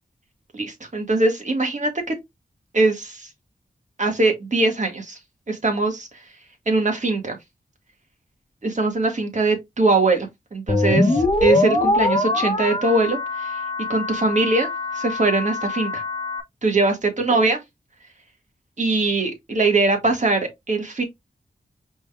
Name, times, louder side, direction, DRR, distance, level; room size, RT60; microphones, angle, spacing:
voice 1, 0.5-2.1 2.7-3.3 4.0-5.2 5.5-6.1 6.7-7.4 8.6-13.6 13.9-16.0 16.6-17.6 18.8-21.0, right 3 dB, 45° right, 1.7 m, -22 dB
sound 1, 10.7-16.4, left 2 dB, 30° left, 1.1 m, -23 dB
5.1 x 3.6 x 2.3 m
cardioid pair, 60°, 17 cm